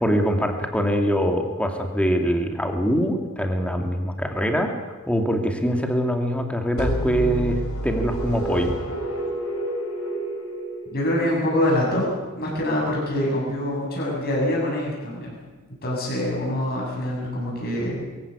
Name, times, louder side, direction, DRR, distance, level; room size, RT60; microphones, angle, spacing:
voice 1, 0.0-4.7 5.1-8.7, equal, 5° left, 3 dB, 2.5 m, -23 dB
sound 1, 6.8-11.5, equal, 85° left, 7.0 m, -29 dB
voice 2, 10.9-12.0 12.4-15.3 15.8-18.0, left 1 dB, 45° left, -3 dB, 7.4 m, -25 dB
22.5 x 15.5 x 8.5 m, 1.3 s
head